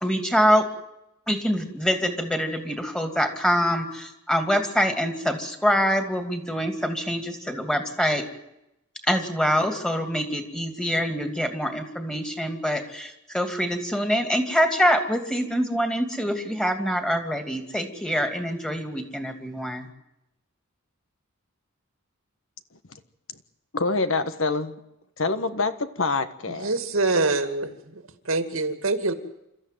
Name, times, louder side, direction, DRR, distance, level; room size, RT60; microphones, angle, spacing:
voice 1, 0.0-0.6 1.3-8.2 9.0-19.9, equal, 5° left, 6 dB, 2.7 m, -25 dB
voice 2, 23.7-24.7 25.2-26.7, left 3 dB, 65° left, 10 dB, 1.5 m, -26 dB
voice 3, 26.5-29.1, right 3 dB, 75° right, 9 dB, 2.3 m, -25 dB
28.5 x 14.0 x 9.3 m, 0.86 s
head